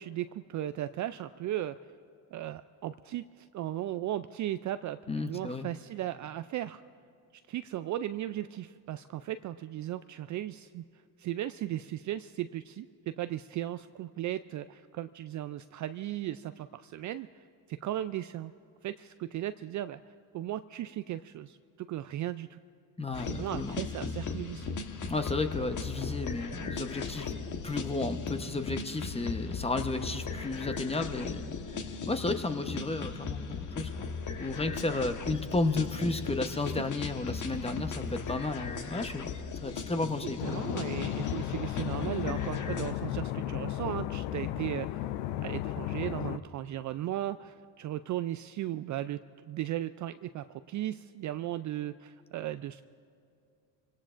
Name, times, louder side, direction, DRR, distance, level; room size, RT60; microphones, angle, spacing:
voice 1, 0.0-1.8 2.3-6.8 7.5-10.8 11.2-18.5 18.8-20.0 20.3-22.6 23.3-24.8 40.4-45.1 45.4-52.8, right 13 dB, 40° right, 12 dB, 0.4 m, -36 dB
voice 2, 5.1-5.7 23.0-23.8 25.1-27.4 27.6-31.5 32.1-34.1 34.4-39.3 39.6-40.8, left 3 dB, 15° left, 8 dB, 0.9 m, -33 dB
sound 1, 23.1-42.9, left 5 dB, 40° left, 1.3 m, -37 dB
sound 2, 40.4-46.4, left 13 dB, 80° left, 0.6 m, -34 dB
25.0 x 17.5 x 2.5 m, 2.5 s
supercardioid pair, 75°, 47 cm